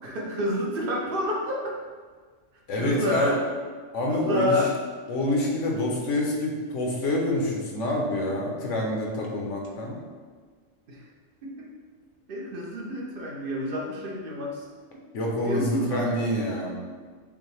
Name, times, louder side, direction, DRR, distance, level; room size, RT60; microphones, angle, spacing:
voice 1, 0.0-1.8 2.8-3.4 4.1-4.8 10.9-11.1 11.4-11.7 12.3-14.7 15.4-16.1, left 1 dB, 55° right, -1 dB, 0.7 m, -29 dB
voice 2, 2.7-3.3 3.9-4.6 5.1-10.0 15.1-16.8, left 1 dB, 75° left, -1 dB, 1.1 m, -27 dB
5.4 x 2.2 x 3.1 m, 1.5 s
omnidirectional pair, 1.3 m